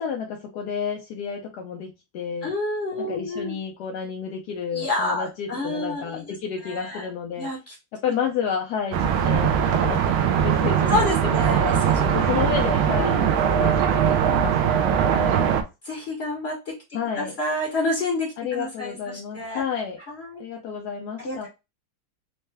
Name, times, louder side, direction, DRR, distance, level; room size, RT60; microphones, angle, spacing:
voice 1, 0.0-2.5 3.0-7.5 7.9-10.1 10.4-10.9 11.2-11.7 12.1-15.7 16.9-17.4 18.4-20.0 20.4-21.5, left 7 dB, 80° left, 2 dB, 0.9 m, -31 dB
voice 2, 2.4-3.6 4.7-6.3 6.6-7.1 7.4-7.7 10.9-12.0 13.0-13.3 15.1-15.4 15.8-16.6 17.2-19.6 20.1-20.4 21.2-21.5, left 2 dB, 50° left, -2 dB, 0.7 m, -29 dB
sound 1, 8.9-15.6, right 8 dB, 80° right, 1.4 m, -21 dB
4.3 x 2.2 x 3.2 m, 0.26 s
omnidirectional pair, 2.4 m